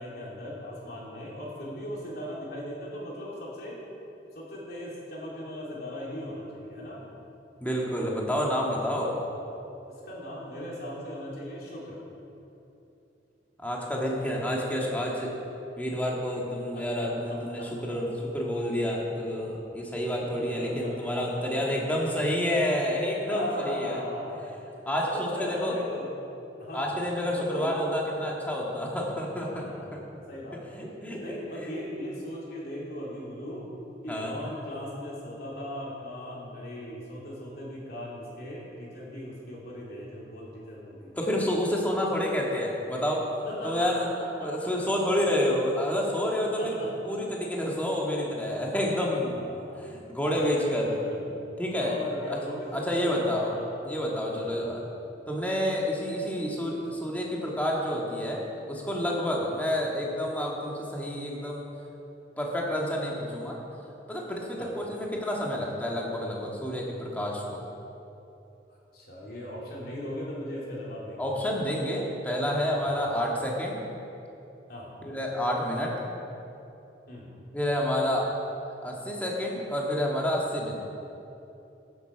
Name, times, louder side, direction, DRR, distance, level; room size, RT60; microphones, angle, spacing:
voice 1, 0.0-3.7 4.3-7.0 10.0-12.0 16.7-18.0 20.4-21.7 23.3-24.6 25.1-26.1 26.6-26.9 27.3-27.7 29.5-30.8 31.2-33.7 34.0-41.1 43.4-44.1 44.4-44.9 46.6-46.9 49.3-49.9 50.5-51.2 51.7-53.7 54.3-54.5 64.6-64.7 68.9-71.3 72.9-73.0 74.7-74.9 77.1-77.3, left 1 dB, 60° left, -5 dB, 3.2 m, -38 dB
voice 2, 7.6-9.2 13.6-15.3 15.8-18.1 18.3-24.0 24.9-25.8 26.7-30.0 30.5-31.7 34.1-34.3 41.1-43.3 43.6-44.1 44.4-49.4 49.8-50.9 51.6-52.0 52.3-52.4 52.7-53.5 53.9-54.8 55.3-61.6 62.4-63.6 64.1-67.6 71.2-73.8 75.0-75.9 77.5-78.3 78.8-80.8, equal, 10° left, -3 dB, 1.9 m, -29 dB
14.5 x 8.0 x 6.0 m, 2.9 s
head